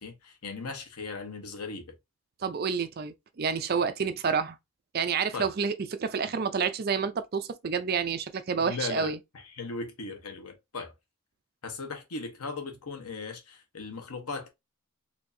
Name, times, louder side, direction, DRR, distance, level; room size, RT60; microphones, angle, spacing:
voice 1, 0.0-1.9 5.3-5.5 8.6-10.9 11.6-14.5, left 4 dB, 85° left, 1.0 m, -38 dB
voice 2, 2.4-4.6 4.9-9.2, right 6 dB, 45° right, 0.4 m, -29 dB
4.4 x 2.7 x 2.6 m
head